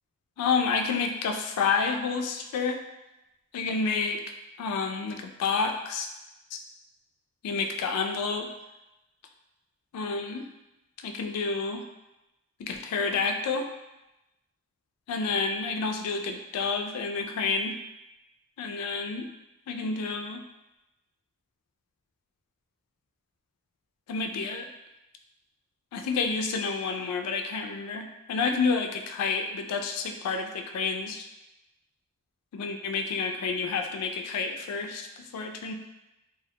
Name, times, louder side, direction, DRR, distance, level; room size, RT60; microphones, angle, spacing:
voice 1, 0.4-2.8 3.5-4.2 4.6-6.1 6.5-6.6 7.4-8.5 9.9-10.4 11.0-11.8 12.6-13.7 15.1-17.8 18.6-19.3 19.7-20.4 24.1-24.7 25.9-31.2 32.5-35.7, left 4 dB, 90° left, 10 dB, 0.3 m, -29 dB
2.4 x 2.1 x 2.7 m, 0.96 s
head